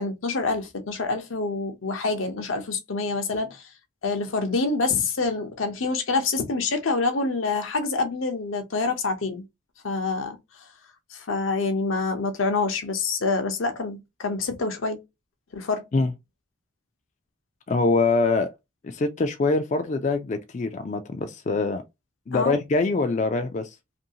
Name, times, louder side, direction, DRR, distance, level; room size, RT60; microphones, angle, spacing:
voice 1, 0.0-3.7 4.0-9.4 9.8-10.4 11.1-15.0 15.5-15.8 22.3-22.6, left 3 dB, 80° left, 0.7 m, -26 dB
voice 2, 17.7-18.5 18.8-21.8 22.3-23.7, left 3 dB, 35° left, 0.3 m, -24 dB
2.7 x 2.6 x 2.7 m
head